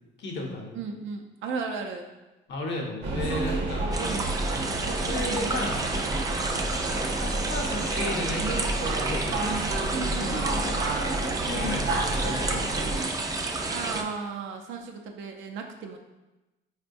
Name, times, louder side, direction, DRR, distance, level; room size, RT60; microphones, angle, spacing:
voice 1, 0.2-0.8 2.5-4.0 5.1-5.9 6.8-9.6 10.1-12.6, left 2 dB, 65° left, 0 dB, 0.7 m, -35 dB
voice 2, 0.7-2.1 4.0-4.4 9.9-10.7 13.7-16.0, right 5 dB, 75° right, 3 dB, 0.5 m, -35 dB
sound 1, 3.0-13.0, right 2 dB, 60° right, 0.8 m, -30 dB
sound 2, 3.9-14.0, right 3 dB, 20° right, 0.3 m, -31 dB
4.4 x 2.2 x 2.5 m, 1.1 s
cardioid pair, 90°, 20 cm